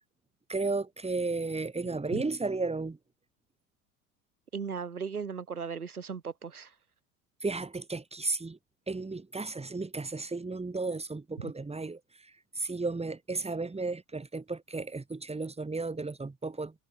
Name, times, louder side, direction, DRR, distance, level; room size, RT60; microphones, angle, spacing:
voice 1, 0.5-3.0 7.4-8.6 8.9-16.7, right 3 dB, 15° right, 7.3 m, -34 dB
voice 2, 4.5-6.7, right 6 dB, 90° right, 2.8 m, -37 dB
figure-of-eight pair, 70°, 43 cm